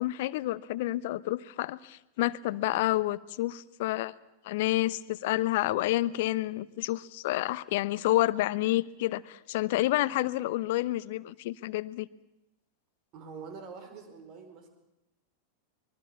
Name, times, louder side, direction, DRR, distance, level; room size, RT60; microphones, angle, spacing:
voice 1, 0.0-4.1 4.4-12.1, left 16 dB, 50° left, 19 dB, 0.8 m, -29 dB
voice 2, 13.1-14.7, right 5 dB, 40° right, 7 dB, 4.7 m, -45 dB
24.0 x 22.5 x 7.1 m, 0.91 s
figure-of-eight pair, 90°, 0 cm